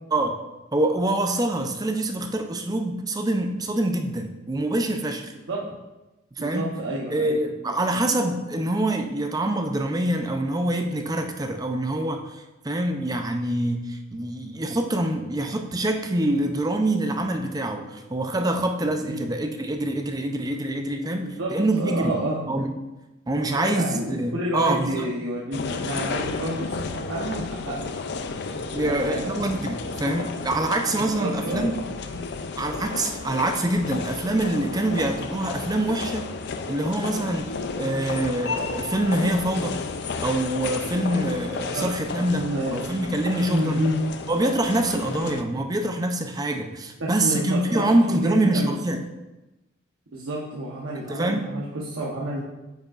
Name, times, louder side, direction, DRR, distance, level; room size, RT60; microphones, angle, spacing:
voice 1, 0.7-5.3 6.4-6.7 7.1-12.2 12.6-22.2 22.5-22.7 23.3-25.1 28.3-28.4 28.7-31.8 32.6-36.3 36.7-37.4 37.8-39.8 40.2-42.4 42.7-43.8 44.3-49.0 51.1-51.5, right 1 dB, 20° right, 5 dB, 0.5 m, -25 dB
voice 2, 6.4-7.4 19.0-19.2 21.4-22.4 23.4-27.8 28.8-29.4 31.0-31.7 41.7-41.9 42.3-42.8 43.5-44.0 47.0-48.7 50.1-52.4, right 1 dB, 85° right, -5 dB, 0.9 m, -29 dB
sound 1, 25.5-45.4, left 4 dB, 55° left, 0.4 m, -32 dB
9.0 x 5.1 x 2.5 m, 1.0 s
head